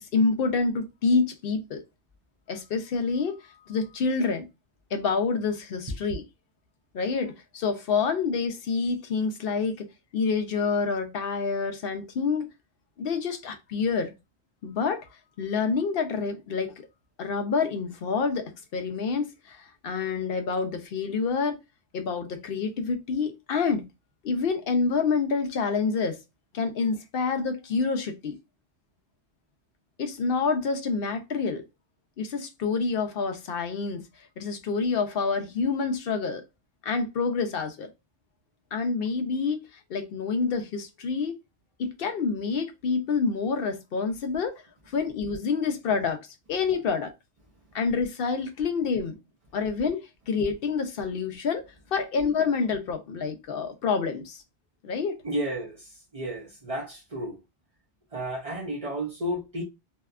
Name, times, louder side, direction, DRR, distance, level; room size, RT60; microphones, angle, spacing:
voice 1, 0.0-1.8 2.5-4.5 4.9-6.2 6.9-9.9 10.1-12.5 13.0-14.1 14.6-15.1 15.4-16.9 17.2-21.6 21.9-23.9 24.2-26.2 26.5-28.4 30.0-31.6 32.2-34.0 34.4-36.5 36.8-37.9 38.7-39.6 39.9-41.3 41.8-47.1 47.7-49.2 49.5-51.6 51.9-54.4 54.8-55.1, left 5 dB, 70° left, 0.7 m, -27 dB
voice 2, 55.2-57.4 58.1-59.6, equal, 45° right, 0.5 m, -32 dB
2.7 x 2.2 x 2.3 m
omnidirectional pair, 1.0 m